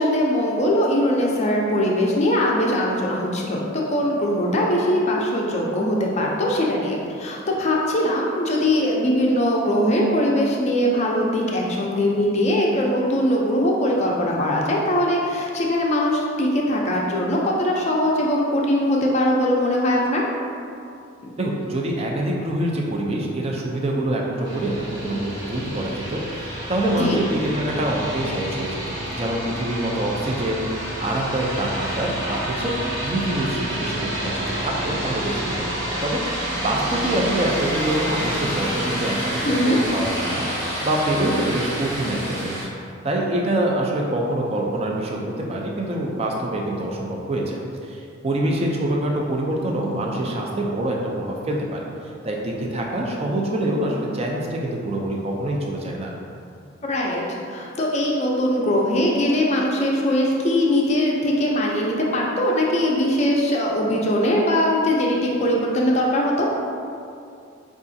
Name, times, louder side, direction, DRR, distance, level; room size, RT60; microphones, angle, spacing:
voice 1, 0.0-20.2 27.0-27.2 39.4-39.8 56.8-57.2 57.5-66.5, left 1 dB, 35° left, -2 dB, 0.4 m, -21 dB
voice 2, 21.4-32.7 33.0-42.7 43.0-51.9 52.2-56.1, right 1 dB, 30° right, -1 dB, 0.4 m, -25 dB
sound 1, 24.4-42.6, right 1 dB, 65° right, 1.1 m, -29 dB
4.6 x 2.4 x 2.6 m, 2.4 s
head